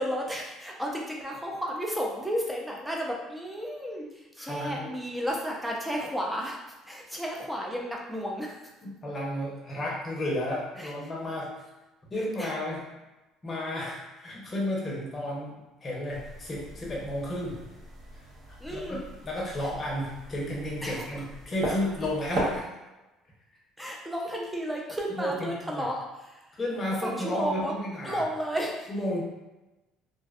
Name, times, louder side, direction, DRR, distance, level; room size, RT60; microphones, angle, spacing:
voice 1, 0.0-6.6 6.8-8.7 10.8-10.9 12.4-12.5 18.6-19.0 19.6-19.7 20.8-21.2 23.8-26.6 27.0-27.7 28.0-28.9, equal, ahead, -2 dB, 0.5 m, -33 dB
voice 2, 4.4-4.9 8.8-11.5 12.1-12.8 13.4-17.6 18.5-19.0 19.2-22.7 25.2-25.9 26.6-28.2 28.9-29.2, left 1 dB, 25° left, -3 dB, 0.8 m, -32 dB
sound 1, 16.1-22.6, right 1 dB, 60° right, 0.7 m, -38 dB
2.5 x 2.2 x 2.4 m, 1.1 s
cardioid pair, 115°, 0 cm